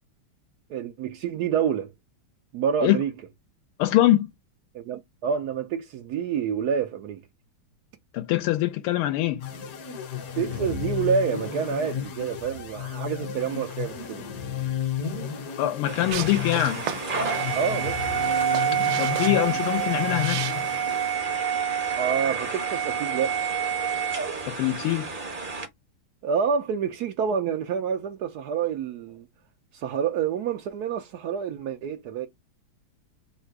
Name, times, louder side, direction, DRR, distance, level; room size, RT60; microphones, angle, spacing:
voice 1, 0.7-1.9 2.5-3.1 4.7-7.2 10.4-14.3 17.5-18.0 21.9-23.4 26.2-29.3 29.7-32.3, right 7 dB, 85° right, 0.8 m, -28 dB
voice 2, 3.8-4.3 8.1-9.5 15.6-16.9 19.0-20.4 24.4-25.1, left 14 dB, 80° left, 1.4 m, -23 dB
sound 1, 9.4-21.2, left 8 dB, 55° left, 1.1 m, -33 dB
sound 2, 15.9-25.7, right 7 dB, 50° right, 0.6 m, -28 dB
sound 3, 16.1-21.1, right 10 dB, 70° right, 1.3 m, -37 dB
3.7 x 2.4 x 4.4 m
omnidirectional pair, 2.4 m